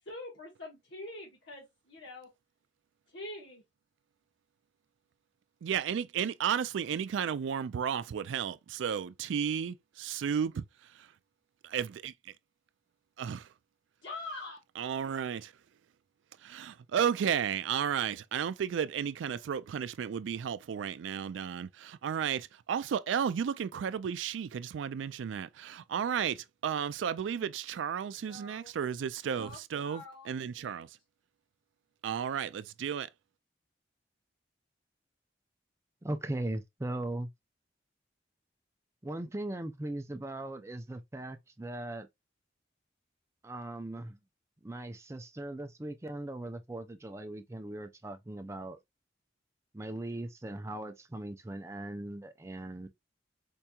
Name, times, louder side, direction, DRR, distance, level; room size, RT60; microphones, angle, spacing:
voice 1, 0.0-2.3 3.1-3.6 14.0-14.6 28.3-28.7 29.4-30.8, left 2 dB, 80° left, 1.3 m, -45 dB
voice 2, 5.6-10.6 11.0-11.1 11.6-12.1 13.2-13.4 14.8-15.5 16.4-30.9 32.0-33.1, right 8 dB, 90° right, 0.3 m, -33 dB
voice 3, 36.0-37.3 39.0-42.1 43.4-44.2 44.6-48.8 49.7-52.9, right 1 dB, 15° right, 0.4 m, -39 dB
4.4 x 2.8 x 2.3 m
head